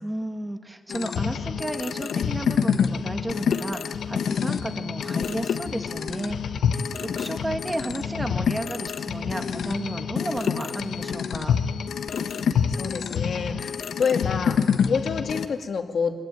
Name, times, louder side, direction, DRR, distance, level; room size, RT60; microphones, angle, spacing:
voice 1, 0.0-11.6, right 1 dB, 10° right, 6 dB, 1.8 m, -33 dB
sound 1, 0.9-15.4, left 7 dB, 90° left, 1.3 m, -27 dB
voice 2, 12.4-16.1, left 6 dB, 60° left, 5 dB, 2.4 m, -28 dB
25.5 x 21.0 x 9.2 m, 1.5 s
wide cardioid pair, 175°, 0 cm